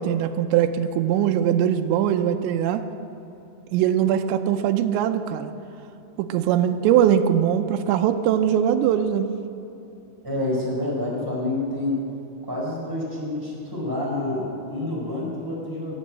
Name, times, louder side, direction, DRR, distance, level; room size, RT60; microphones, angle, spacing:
voice 1, 0.0-2.8 3.7-5.5 6.2-9.3, right 10 dB, 90° right, 6 dB, 3.0 m, -21 dB
voice 2, 10.2-12.0 12.4-16.0, left 2 dB, 5° right, -5 dB, 4.2 m, -28 dB
20.5 x 8.9 x 7.6 m, 2.9 s
omnidirectional pair, 5.0 m